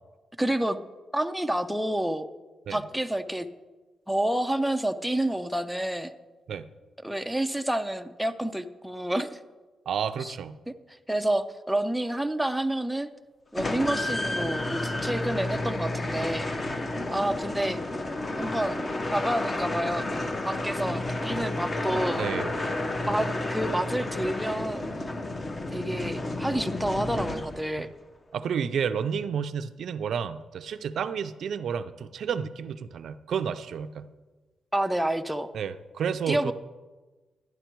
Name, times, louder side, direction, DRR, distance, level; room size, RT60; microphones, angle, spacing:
voice 1, 0.4-0.8 1.1-2.3 2.7-3.5 4.1-6.1 7.0-9.4 10.2-10.4 11.1-13.1 13.5-16.5 17.1-17.8 18.4-18.8 19.1-22.3 23.0-24.9 25.7-27.9 34.7-35.5 36.3-36.5, right 1 dB, ahead, 6 dB, 0.4 m, -29 dB
voice 2, 9.9-10.6 16.6-16.7 22.2-22.5 27.8-27.9 28.3-34.1 35.5-36.5, right 7 dB, 60° right, 11 dB, 0.4 m, -31 dB
sound 1, 13.6-27.8, left 2 dB, 25° left, 0.7 m, -31 dB
11.5 x 11.0 x 4.5 m, 1.2 s
wide cardioid pair, 160°, 0 cm